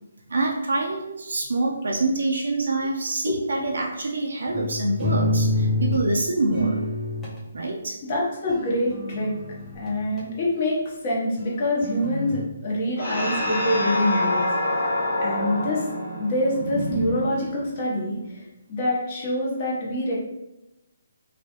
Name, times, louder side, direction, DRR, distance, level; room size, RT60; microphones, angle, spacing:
voice 1, 0.3-6.8 7.5-8.0, right 2 dB, 80° right, -1 dB, 0.5 m, -26 dB
sound 1, 4.5-6.1 6.5-7.4 8.5-10.2 11.4-12.4, left 1 dB, 10° left, 0.6 m, -27 dB
voice 2, 8.1-9.3 9.7-14.4 15.2-15.8 16.2-20.2, left 1 dB, 35° left, -5 dB, 1.0 m, -25 dB
sound 2, 13.0-17.8, left 1 dB, 75° left, 1.2 m, -26 dB
3.0 x 2.3 x 3.0 m, 0.91 s
hypercardioid pair, 160°, 0 cm